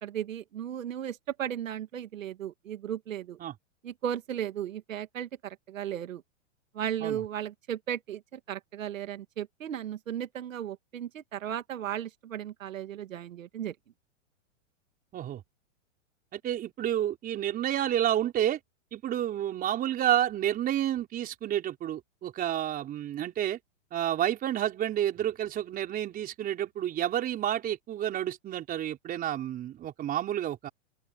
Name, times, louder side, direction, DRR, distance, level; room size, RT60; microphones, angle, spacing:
voice 1, 0.0-3.4 3.8-6.2 6.7-13.7, right 10 dB, 85° right, 2.3 m, -35 dB
voice 2, 16.3-18.6 18.9-23.6 23.9-30.7, right 11 dB, 20° right, 4.8 m, -30 dB
open air
hypercardioid pair, 150°, 39 cm